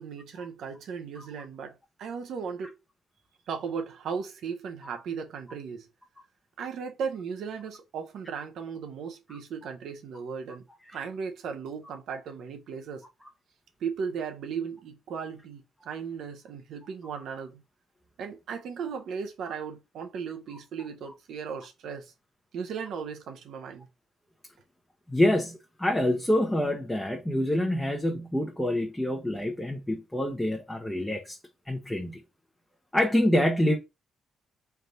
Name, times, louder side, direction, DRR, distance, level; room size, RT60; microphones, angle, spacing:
voice 1, 0.0-2.7 3.5-5.9 6.6-10.6 10.9-13.0 13.8-17.6 18.2-22.1 22.5-23.9, right 6 dB, 75° right, 0.8 m, -36 dB
voice 2, 25.1-31.4 31.7-32.2 32.9-33.8, left 1 dB, 5° left, 0.7 m, -26 dB
3.4 x 2.4 x 4.1 m
cardioid pair, 90°, 0 cm